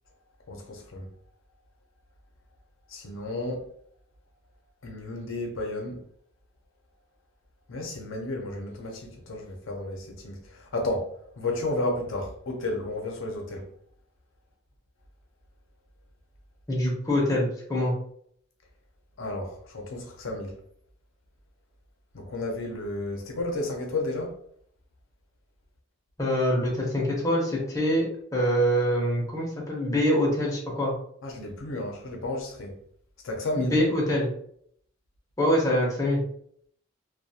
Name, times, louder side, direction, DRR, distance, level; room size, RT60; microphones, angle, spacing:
voice 1, 0.5-1.1 2.9-3.6 4.8-6.0 7.7-11.1 11.4-13.7 19.2-20.5 22.1-24.4 31.2-32.8 33.2-33.8, left 2 dB, 80° left, 0.6 m, -32 dB
voice 2, 16.7-17.9 26.2-28.0 28.3-30.9 33.6-34.3 35.4-36.2, equal, 15° left, 0.6 m, -24 dB
2.3 x 2.2 x 2.7 m
head